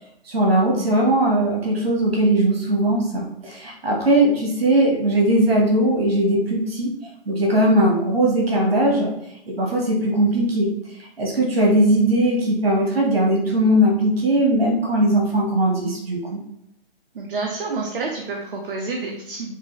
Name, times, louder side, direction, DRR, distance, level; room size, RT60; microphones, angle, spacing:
voice 1, 0.2-6.9 7.3-9.1 9.5-10.7 11.0-16.4, right 1 dB, 85° right, -2 dB, 1.4 m, -19 dB
voice 2, 17.1-19.5, right 3 dB, 70° right, 1 dB, 0.8 m, -28 dB
4.7 x 2.7 x 3.1 m, 0.78 s
hypercardioid pair, 135°, 29 cm